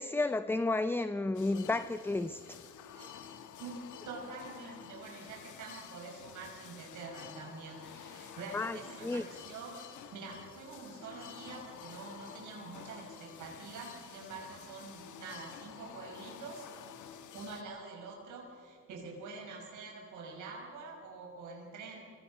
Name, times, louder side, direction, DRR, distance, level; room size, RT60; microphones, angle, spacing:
voice 1, 0.0-2.4 8.5-9.2, left 2 dB, 5° left, 13 dB, 0.5 m, -32 dB
sound 1, 1.3-17.6, left 8 dB, 75° left, 1.6 m, -50 dB
voice 2, 3.6-16.7 17.3-22.0, right 3 dB, 80° right, 0 dB, 5.6 m, -46 dB
25.0 x 22.5 x 5.4 m, 2.5 s
cardioid pair, 90°, 30 cm